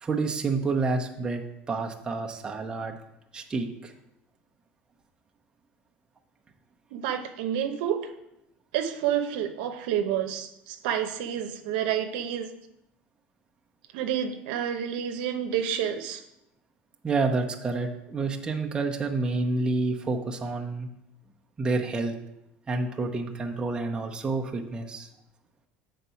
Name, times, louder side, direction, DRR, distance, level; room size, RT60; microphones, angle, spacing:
voice 1, 0.0-2.9 3.3-3.9 17.0-20.9 21.6-22.1 22.7-25.1, right 3 dB, 20° right, 1 dB, 0.8 m, -29 dB
voice 2, 6.9-8.1 8.7-12.5 13.9-16.2, right 9 dB, 90° right, 7 dB, 0.8 m, -29 dB
7.6 x 4.1 x 5.7 m, 0.83 s
cardioid pair, 130°, 5 cm